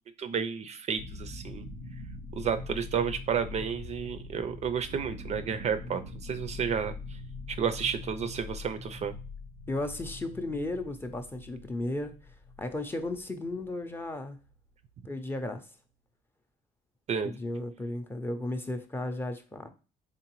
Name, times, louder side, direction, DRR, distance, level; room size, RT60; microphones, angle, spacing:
voice 1, 0.2-1.7 2.3-6.9 7.5-9.1 17.1-17.3, right 7 dB, 40° right, 0.4 m, -31 dB
sound 1, 1.0-14.9, left 3 dB, 70° left, 0.8 m, -43 dB
voice 2, 9.7-14.4 15.0-15.7 17.2-19.7, left 2 dB, 15° left, 0.5 m, -35 dB
3.7 x 3.3 x 2.9 m
cardioid pair, 110°, 17 cm